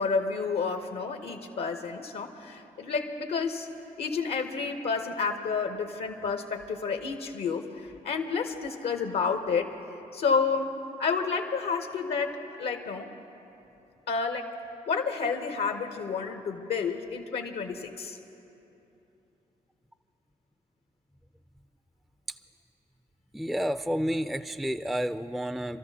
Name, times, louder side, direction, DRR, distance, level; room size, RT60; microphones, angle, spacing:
voice 1, 0.0-3.7 4.0-9.8 10.1-10.7 11.0-13.1 14.1-14.6 14.9-18.2, left 5 dB, 80° left, 5 dB, 0.8 m, -30 dB
voice 2, 23.3-25.8, equal, ahead, 11 dB, 0.3 m, -30 dB
29.5 x 13.0 x 2.8 m, 2.9 s
cardioid pair, 65°, 17 cm